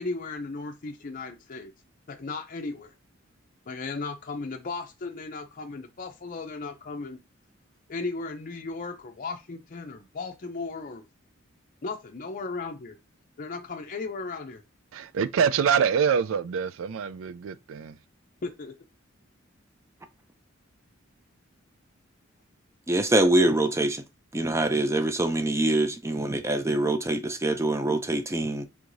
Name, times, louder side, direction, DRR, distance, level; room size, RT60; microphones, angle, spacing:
voice 1, 0.0-1.7 2.1-2.9 3.7-7.2 7.9-11.0 11.8-13.0 13.4-14.6 18.4-18.8, left 3 dB, 45° left, 0.5 m, -36 dB
voice 2, 14.9-18.0, right 7 dB, 80° right, 0.4 m, -25 dB
voice 3, 22.9-24.0 24.3-28.6, right 1 dB, 15° right, 0.5 m, -24 dB
4.7 x 3.5 x 2.6 m
head